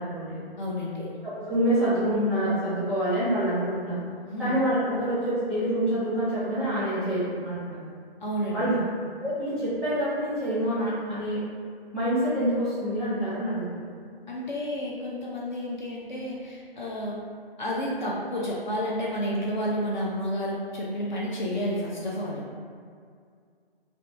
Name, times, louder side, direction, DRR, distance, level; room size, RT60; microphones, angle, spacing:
voice 1, 0.0-0.4 1.2-4.0 4.4-7.8 8.5-8.8 9.2-11.4 11.9-13.8, right 1 dB, ahead, -14 dB, 0.9 m, -26 dB
voice 2, 0.6-1.1 4.3-4.6 8.2-8.9 14.3-17.2 17.6-22.4, equal, 50° left, -5 dB, 0.5 m, -30 dB
2.7 x 2.5 x 3.2 m, 2.2 s
figure-of-eight pair, 140°, 31 cm